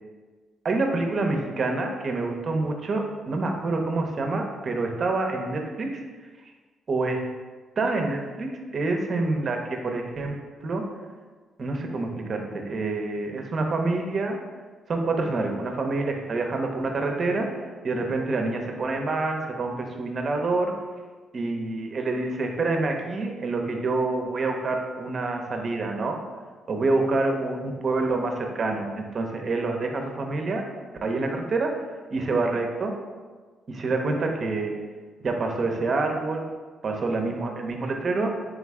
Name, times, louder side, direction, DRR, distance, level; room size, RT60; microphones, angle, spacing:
voice 1, 0.6-6.0 6.9-7.2 7.8-10.4 10.6-10.8 11.6-14.4 14.9-17.5 17.8-20.7 21.3-26.2 26.7-30.6 31.0-31.7 32.1-32.9 33.7-34.7 35.2-36.4 36.8-38.3, right 3 dB, 45° right, 3 dB, 0.6 m, -27 dB
3.6 x 3.1 x 3.5 m, 1.4 s
cardioid pair, 90°, 0 cm